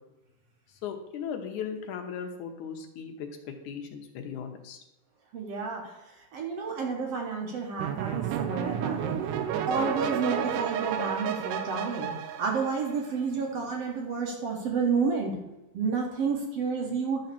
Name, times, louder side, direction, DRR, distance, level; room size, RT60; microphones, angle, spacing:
voice 1, 0.8-4.8, left 7 dB, 75° left, 4 dB, 2.3 m, -37 dB
voice 2, 5.3-5.9 6.3-9.2 9.7-12.1 12.4-15.3 15.7-17.2, right 5 dB, 60° right, 0 dB, 2.1 m, -30 dB
sound 1, 7.8-13.2, right 9 dB, 85° right, 2.2 m, -31 dB
11.5 x 3.9 x 6.9 m, 1.0 s
omnidirectional pair, 3.7 m